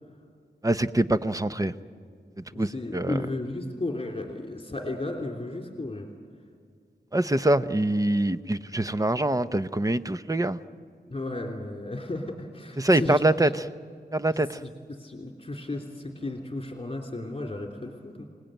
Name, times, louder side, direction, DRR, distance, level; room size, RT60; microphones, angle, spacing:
voice 1, 0.6-1.7 2.5-3.2 7.1-10.6 12.8-13.7 14.1-14.6, right 1 dB, 20° right, 12 dB, 0.7 m, -24 dB
voice 2, 2.5-6.1 11.1-13.2 14.6-18.2, left 2 dB, 30° left, 2 dB, 3.2 m, -34 dB
28.0 x 19.0 x 9.1 m, 2.1 s
wide cardioid pair, 80°, 19 cm